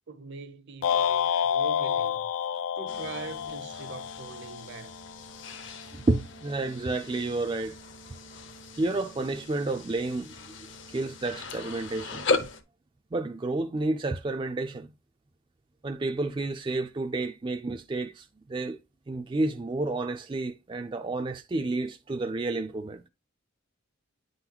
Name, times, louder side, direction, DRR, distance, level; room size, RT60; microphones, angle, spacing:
voice 1, 0.1-2.3 2.7-5.0, right 4 dB, 55° right, 0.7 m, -42 dB
sound 1, 0.8-5.1, left 8 dB, 75° left, 0.4 m, -29 dB
sound 2, 2.9-12.6, left 3 dB, 60° left, 0.9 m, -37 dB
voice 2, 5.9-7.7 8.7-10.3 10.9-12.3 13.1-14.9 15.8-18.8 19.1-23.0, right 2 dB, 25° right, 0.3 m, -30 dB
10.0 x 3.9 x 2.9 m
head